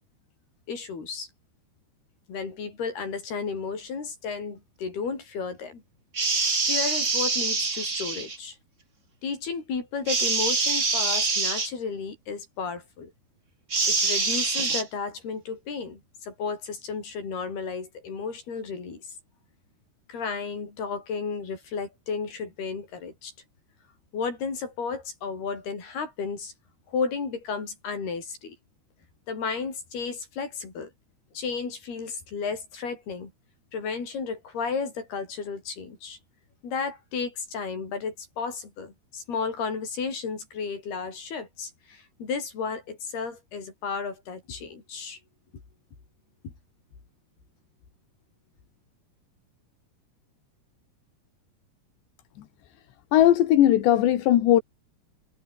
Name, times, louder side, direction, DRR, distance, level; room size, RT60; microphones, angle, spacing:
voice 1, 0.7-1.3 2.3-5.8 6.7-8.6 9.2-13.1 13.9-19.1 20.1-23.3 24.1-26.5 26.9-28.6 29.3-30.9 31.3-33.3 33.7-36.2 36.6-45.2 46.4-46.5, left 5 dB, 65° left, 8.1 m, -33 dB
sound 1, 6.1-8.4 10.1-11.7 13.7-14.8, right 4 dB, 25° right, 1.8 m, -25 dB
voice 2, 53.1-54.6, left 12 dB, 85° left, 4.0 m, -18 dB
omnidirectional pair, 4.9 m